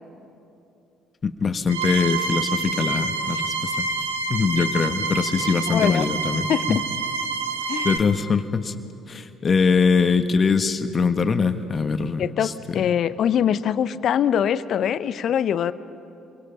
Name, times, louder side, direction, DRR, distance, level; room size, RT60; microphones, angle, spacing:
voice 1, 1.2-3.7 4.3-6.8 7.8-8.7 9.1-12.5, left 5 dB, 40° left, 9 dB, 1.4 m, -22 dB
sound 1, 1.7-8.0, right 4 dB, 85° right, 1.1 m, -27 dB
voice 2, 5.7-6.1 6.5-6.8 7.7-7.9 12.2-15.7, left 9 dB, 55° left, 15 dB, 0.7 m, -23 dB
28.5 x 23.0 x 5.9 m, 2.8 s
hypercardioid pair, 50°, 0 cm